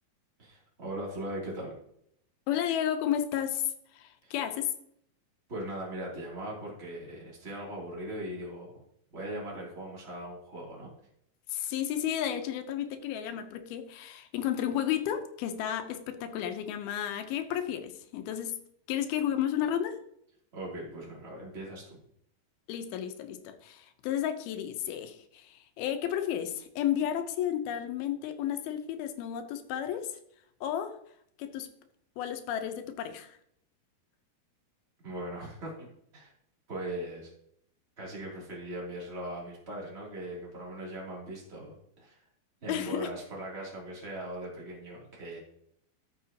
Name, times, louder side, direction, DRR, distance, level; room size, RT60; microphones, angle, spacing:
voice 1, 0.4-1.7 4.2-4.3 5.5-8.8 9.1-10.9 20.5-22.0 35.0-35.9 36.1-36.3 36.7-37.3 38.0-42.2 42.6-45.4, right 1 dB, 20° right, -4 dB, 2.7 m, -39 dB
voice 2, 2.5-4.7 11.5-18.6 18.9-20.0 22.7-30.1 30.6-31.0 31.4-31.7 32.2-33.4 42.7-43.1, left 10 dB, 85° left, 8 dB, 2.7 m, -32 dB
13.0 x 6.6 x 2.9 m, 0.72 s
omnidirectional pair, 4.3 m